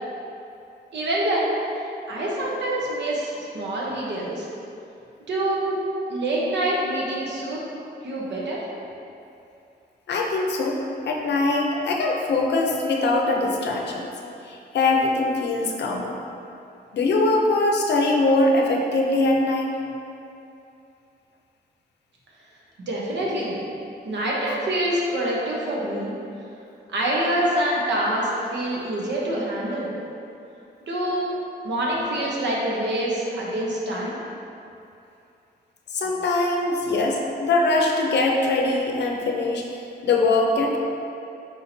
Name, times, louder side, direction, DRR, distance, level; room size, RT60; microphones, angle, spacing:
voice 1, 0.9-1.5 2.1-4.5 5.3-5.8 6.1-7.6 8.0-8.6 22.9-23.6 24.0-26.1 26.9-29.9 30.9-31.4 31.6-34.1, right 1 dB, 80° right, -4 dB, 0.9 m, -26 dB
voice 2, 10.1-10.8 11.1-14.1 14.4-16.2 16.9-19.7 35.9-39.7 40.0-40.8, left 2 dB, 70° left, 1 dB, 0.6 m, -22 dB
4.6 x 2.7 x 4.3 m, 2.7 s
wide cardioid pair, 140°, 18 cm